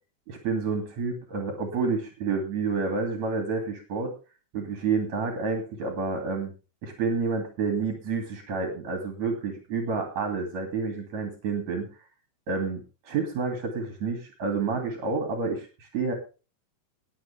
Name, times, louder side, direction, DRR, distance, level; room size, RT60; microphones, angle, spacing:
voice 1, 0.3-4.1 4.5-6.5 6.8-11.9 12.5-16.1, right 4 dB, 70° right, 4 dB, 3.9 m, -29 dB
20.5 x 8.1 x 3.5 m, 0.33 s
omnidirectional pair, 3.3 m